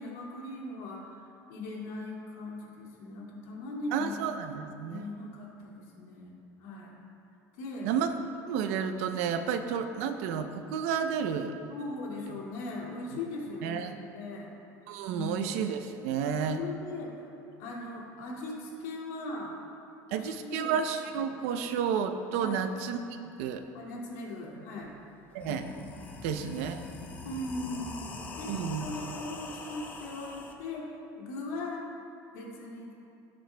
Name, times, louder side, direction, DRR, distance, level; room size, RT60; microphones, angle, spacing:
voice 1, 0.0-4.1 4.9-7.0 7.6-7.9 11.7-14.5 15.1-15.5 16.2-17.3 17.6-19.6 20.1-20.8 22.4-22.6 23.7-24.9 27.2-30.9 31.2-31.8 32.3-32.9, left 2 dB, 75° left, -3 dB, 2.3 m, -39 dB
voice 2, 3.9-5.0 7.8-8.1 8.5-11.5 13.6-14.0 14.9-16.6 20.1-23.0 23.4-23.6 25.3-25.7 26.2-26.8 28.5-28.9, right 7 dB, 85° right, 8 dB, 0.7 m, -31 dB
sound 1, 24.8-24.9 25.3-30.5, left 3 dB, 20° left, 0.7 m, -43 dB
17.5 x 7.7 x 2.3 m, 2.7 s
cardioid pair, 165°, 8 cm